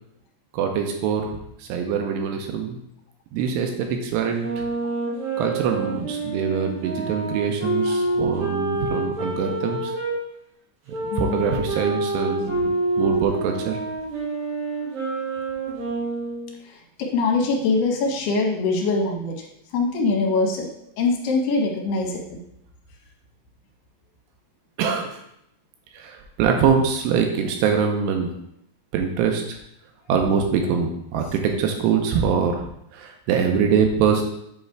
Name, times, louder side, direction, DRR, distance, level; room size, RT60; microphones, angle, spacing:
voice 1, 0.5-2.8 3.3-4.7 5.4-9.9 11.0-12.7 13.0-13.8 24.8-25.2 25.9-28.3 28.9-29.6 30.1-32.7 32.9-34.2, right 6 dB, 85° right, 3 dB, 2.8 m, -23 dB
sound 1, 4.4-10.2 10.9-16.5, right 2 dB, 45° right, 2.0 m, -27 dB
voice 2, 17.0-19.3 19.7-20.7 21.0-22.4, left 3 dB, 75° left, 1 dB, 2.9 m, -23 dB
7.9 x 3.2 x 4.5 m, 0.77 s
omnidirectional pair, 4.9 m